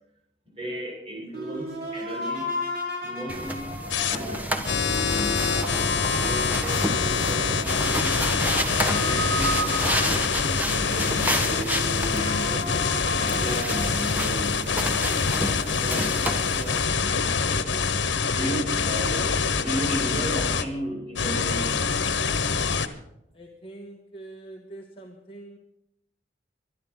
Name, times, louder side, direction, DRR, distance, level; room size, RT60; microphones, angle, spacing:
voice 1, 0.5-2.5 3.0-3.7 4.1-8.3 8.7-12.8 13.2-17.9 18.3-21.7, equal, 30° right, -2 dB, 7.4 m, -35 dB
sound 1, 1.3-10.6 11.1-11.2 11.4-14.2, equal, 60° right, 7.3 m, -34 dB
sound 2, 3.3-16.8, equal, 10° right, 1.7 m, -31 dB
sound 3, 3.9-4.2 4.7-20.6 21.2-22.9, left 5 dB, 80° left, 1.4 m, -25 dB
voice 2, 23.3-25.6, right 2 dB, 30° left, 0 dB, 1.6 m, -44 dB
24.0 x 11.5 x 4.1 m, 0.82 s
head